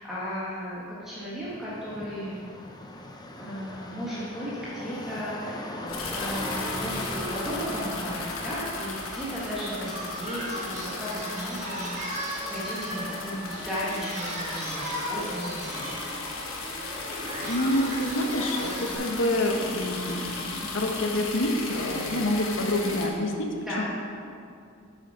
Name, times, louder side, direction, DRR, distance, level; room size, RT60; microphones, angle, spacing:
voice 1, 0.0-2.4 3.3-16.0 23.6-23.8, equal, ahead, -10 dB, 1.5 m, -35 dB
sound 1, 1.4-8.7, left 1 dB, 20° left, 0.6 m, -38 dB
sound 2, 5.9-23.1, left 3 dB, 85° left, 1.2 m, -36 dB
Singing, 9.0-18.9, equal, 35° right, 1.6 m, -37 dB
voice 2, 17.4-23.5 23.8-23.9, left 1 dB, 65° left, 3 dB, 1.0 m, -27 dB
8.1 x 7.0 x 5.0 m, 2.4 s
head